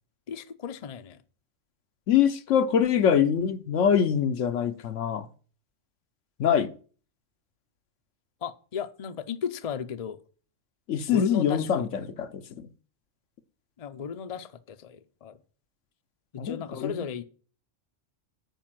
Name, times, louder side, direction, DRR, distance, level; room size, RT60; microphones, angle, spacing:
voice 1, 0.3-1.2 8.4-10.2 11.0-11.7 13.8-15.4 16.3-17.3, left 7 dB, 40° left, 0.6 m, -35 dB
voice 2, 2.1-5.3 6.4-6.7 10.9-12.7 16.4-16.9, left 8 dB, 75° left, 1.1 m, -24 dB
9.1 x 5.4 x 7.5 m
omnidirectional pair, 1.3 m